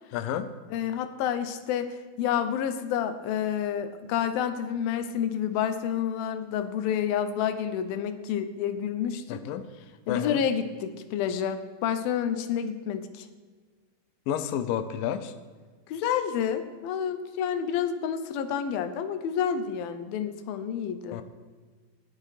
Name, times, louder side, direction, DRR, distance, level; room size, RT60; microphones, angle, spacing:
voice 1, 0.1-0.4 9.3-9.6 10.1-10.4 14.3-15.3 21.1-21.2, left 9 dB, 90° left, 10 dB, 1.9 m, -30 dB
voice 2, 0.7-9.4 10.1-13.3 15.9-21.2, left 8 dB, 75° left, 10 dB, 2.3 m, -29 dB
16.5 x 11.0 x 4.9 m, 1.5 s
omnidirectional pair, 5.1 m